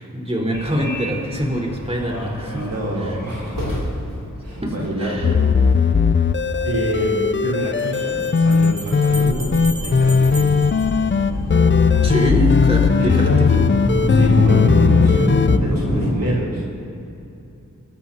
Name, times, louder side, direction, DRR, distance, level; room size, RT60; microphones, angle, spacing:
voice 1, 0.0-2.7 3.0-3.2 4.6-5.3 12.0-13.6, equal, 20° right, -3 dB, 4.2 m, -24 dB
Subway metro underground, 0.5-16.1, equal, 75° left, 4.0 m, -26 dB
voice 2, 2.5-3.8 4.4-5.4 6.6-10.5 13.0-13.3 14.1-16.6, right 1 dB, 90° right, -6 dB, 3.3 m, -27 dB
sound 1, 5.2-15.6, left 5 dB, 35° left, 0.5 m, -17 dB
Bell, 7.8-11.7, left 1 dB, 40° right, 2.1 m, -36 dB
28.0 x 13.5 x 2.9 m, 2.8 s
cardioid pair, 40°, 33 cm